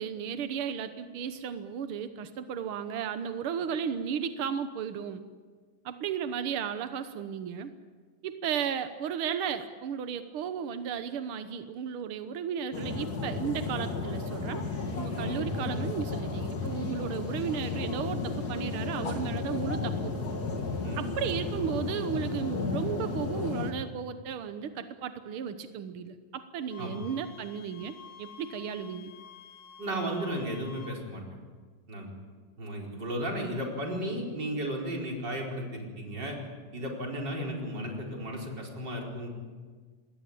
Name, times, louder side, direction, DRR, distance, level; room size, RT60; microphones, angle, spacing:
voice 1, 0.0-5.2 5.8-7.7 8.2-14.6 14.9-20.1 21.0-29.1, right 7 dB, 70° right, 9 dB, 1.3 m, -34 dB
sound 1, 12.7-23.7, left 3 dB, 35° left, 2.3 m, -33 dB
Wind instrument woodwind instrument, 26.7-31.0, left 7 dB, 60° left, 3.2 m, -50 dB
voice 2, 29.8-31.2 31.9-32.1 32.6-36.4 36.7-39.3, equal, 30° right, 0 dB, 5.0 m, -34 dB
27.0 x 20.5 x 8.6 m, 1.5 s
omnidirectional pair, 3.8 m